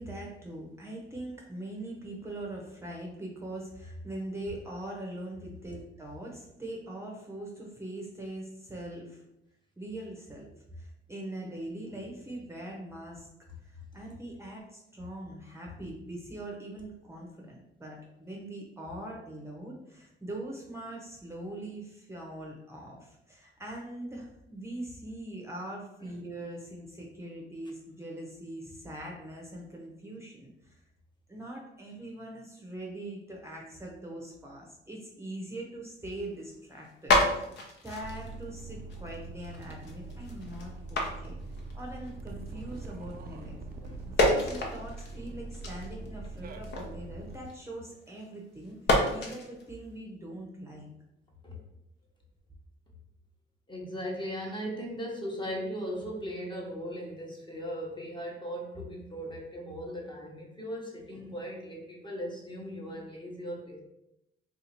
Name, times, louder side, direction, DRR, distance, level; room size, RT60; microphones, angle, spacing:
voice 1, 0.0-9.2 9.8-10.5 10.7-13.3 13.6-30.8 31.3-37.5 37.8-41.3 41.7-43.6 44.0-48.8 49.1-50.9, right 1 dB, 15° right, -2 dB, 0.7 m, -42 dB
sound 1, 36.5-36.6 36.8-42.2 42.5-43.5 43.8-48.3 48.6-49.8, left 2 dB, 65° left, 0.8 m, -30 dB
sound 2, 38.0-47.3, right 2 dB, 50° right, 0.4 m, -43 dB
voice 2, 53.7-63.8, equal, 25° left, -1 dB, 1.0 m, -38 dB
2.7 x 2.4 x 4.2 m, 0.84 s
cardioid pair, 90°, 20 cm